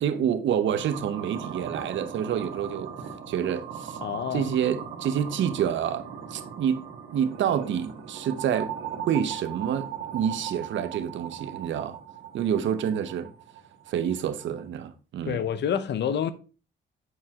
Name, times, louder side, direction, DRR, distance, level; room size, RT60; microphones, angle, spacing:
voice 1, 0.0-2.9 3.3-4.0 4.3-6.9 7.1-8.7 9.1-12.0 12.3-13.3 13.9-15.4, right 9 dB, 70° right, 0.9 m, -28 dB
sound 1, 0.7-14.7, right 8 dB, 85° right, 1.6 m, -39 dB
voice 2, 4.0-4.5 15.2-16.3, left 8 dB, 60° left, 0.8 m, -28 dB
8.2 x 4.7 x 3.6 m
cardioid pair, 90°, 20 cm